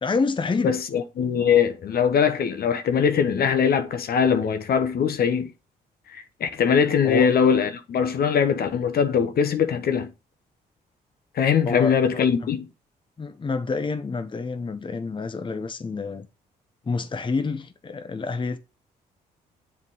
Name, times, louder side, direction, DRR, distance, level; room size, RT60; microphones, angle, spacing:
voice 1, 0.0-0.8 7.0-7.3 11.7-12.5 13.2-16.3 16.9-18.6, left 4 dB, 30° left, 0.8 m, -28 dB
voice 2, 0.6-5.5 6.1-10.1 11.3-12.7, left 7 dB, 60° left, 1.0 m, -22 dB
7.4 x 3.7 x 4.8 m
supercardioid pair, 65°, 18 cm